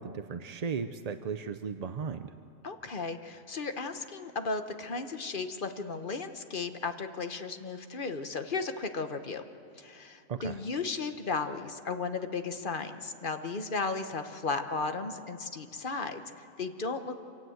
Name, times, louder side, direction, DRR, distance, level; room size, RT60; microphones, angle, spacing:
voice 1, 0.0-2.3 10.3-10.6, right 6 dB, 50° right, 10 dB, 0.5 m, -36 dB
voice 2, 2.6-9.4 9.8-17.2, left 4 dB, 40° left, 8 dB, 1.2 m, -35 dB
26.5 x 17.5 x 7.9 m, 2.8 s
omnidirectional pair, 1.4 m